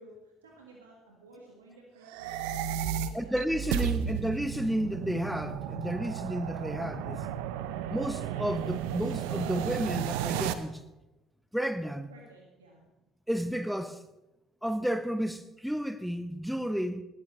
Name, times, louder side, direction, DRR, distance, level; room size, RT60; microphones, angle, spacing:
voice 1, 0.0-2.3 2.6-4.1 12.1-12.9, right 2 dB, 90° right, 1.8 m, -54 dB
sound 1, 2.0-10.5, right 10 dB, 75° right, 0.7 m, -33 dB
voice 2, 3.1-7.3 7.9-10.8 11.5-12.1 13.3-14.0 14.6-17.0, equal, ahead, 0.9 m, -32 dB
18.5 x 13.0 x 3.2 m
hypercardioid pair, 60°, 0 cm